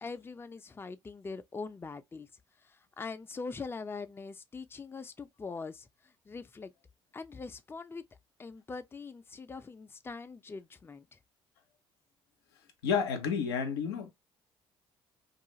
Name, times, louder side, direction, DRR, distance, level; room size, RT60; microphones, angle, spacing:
voice 1, 0.0-2.3 3.0-5.9 6.3-6.7 7.1-8.0 8.4-11.2, left 4 dB, 20° left, 0.4 m, -42 dB
voice 2, 12.8-14.1, left 6 dB, 85° left, 0.5 m, -30 dB
2.4 x 2.3 x 2.8 m
hypercardioid pair, 50°, 12 cm